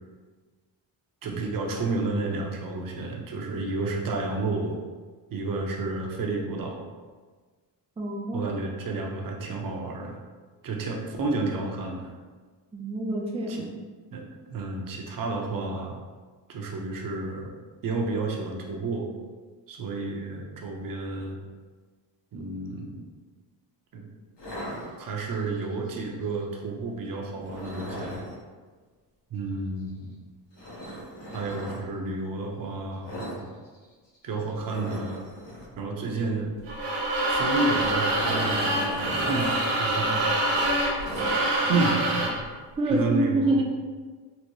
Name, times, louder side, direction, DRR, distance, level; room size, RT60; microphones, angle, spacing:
voice 1, 1.2-4.8 5.3-6.9 8.3-10.2 10.6-12.1 13.5-13.7 14.1-14.3 14.5-16.0 16.5-17.5 17.8-19.1 19.7-21.4 22.3-23.1 23.9-24.1 25.0-28.2 29.3-30.1 31.3-33.5 34.2-35.3 35.8-36.5 37.3-40.3 40.8-41.1 41.7-42.3 42.9-43.6, right 3 dB, 50° right, 0 dB, 0.7 m, -31 dB
voice 2, 8.0-8.5 12.7-13.7 42.8-43.6, right 1 dB, 15° right, -1 dB, 0.4 m, -26 dB
sound 1, 24.4-25.4 27.4-28.3 30.5-31.8 33.0-33.4 33.6-33.8 34.1-34.2 34.6-35.7 37.3-39.6 39.9-40.0 40.5-41.7, equal, 75° left, 1.4 m, -37 dB
sound 2, 36.7-42.4, right 1 dB, 85° right, 0.9 m, -25 dB
4.1 x 2.1 x 3.0 m, 1.4 s
cardioid pair, 100°, 43 cm